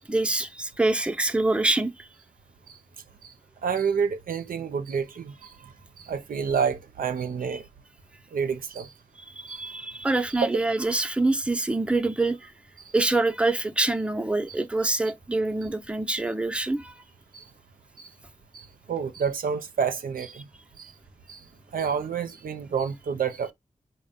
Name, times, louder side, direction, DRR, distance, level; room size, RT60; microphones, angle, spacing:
voice 1, 0.1-2.1 9.3-12.5 12.9-16.9, right 2 dB, 10° right, 0.5 m, -25 dB
voice 2, 3.6-7.6 8.3-8.9 9.5-9.6 12.8-12.9 17.3-17.5 18.0-18.1 18.5-20.5 20.8-20.9 21.3-21.4 21.7-23.5, right 6 dB, 90° right, 0.5 m, -29 dB
4.0 x 2.1 x 3.6 m
cardioid pair, 50°, 14 cm